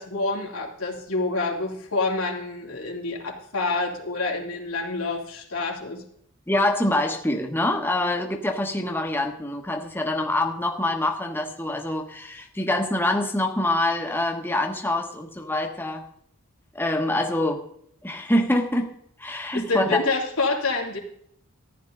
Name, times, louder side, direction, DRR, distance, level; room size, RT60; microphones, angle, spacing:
voice 1, 0.0-6.0 19.5-21.0, left 3 dB, 90° left, 0 dB, 2.8 m, -27 dB
voice 2, 6.5-16.0 16.7-17.6 18.0-18.9 19.2-20.0, left 1 dB, 10° left, 2 dB, 1.2 m, -25 dB
14.5 x 10.5 x 3.9 m, 0.65 s
head